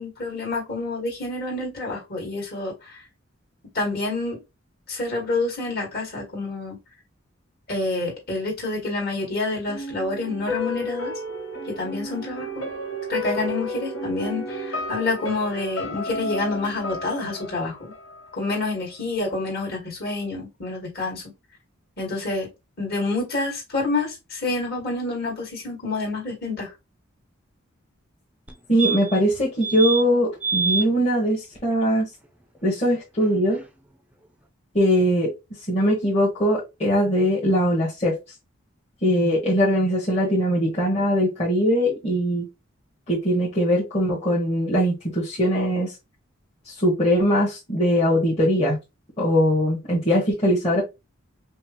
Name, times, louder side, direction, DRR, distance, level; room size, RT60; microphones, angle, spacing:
voice 1, 0.0-3.0 3.7-4.4 4.9-6.8 7.7-11.1 11.7-12.7 13.1-17.9 18.3-21.2 22.0-22.5 22.8-26.7, left 3 dB, 50° left, 2.0 m, -28 dB
sound 1, 9.7-18.7 19.0-19.1, left 1 dB, 70° left, 1.2 m, -32 dB
sound 2, 28.5-28.6 28.8-29.3 29.6-30.0 30.4-30.9 33.2-33.3 33.5-33.6, right 4 dB, 5° right, 0.5 m, -25 dB
voice 2, 28.7-32.1 32.6-33.6 34.7-35.3 35.7-38.1 39.0-42.5 43.1-45.9 46.6-48.8 49.2-50.8, equal, 30° left, 1.3 m, -21 dB
5.3 x 2.1 x 3.0 m
head